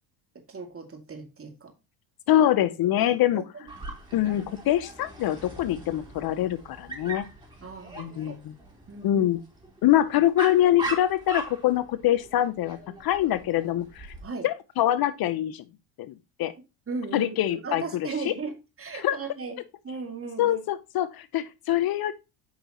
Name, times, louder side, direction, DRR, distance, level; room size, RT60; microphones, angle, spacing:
voice 1, 0.5-1.7 3.0-3.4 7.6-8.4 8.9-9.3 14.2-14.5 16.9-18.5 18.8-19.6 19.8-20.6, right 4 dB, 30° right, 2.4 m, -36 dB
voice 2, 2.3-3.4 4.1-7.3 8.0-8.5 9.0-9.4 9.8-14.1 14.4-15.6 16.0-16.5 17.1-18.3 18.9-19.2 20.4-22.1, left 12 dB, 50° left, 0.8 m, -24 dB
Dog, 3.7-14.2, right 2 dB, 10° right, 3.7 m, -40 dB
8.6 x 5.5 x 3.0 m
hypercardioid pair, 70°, 45 cm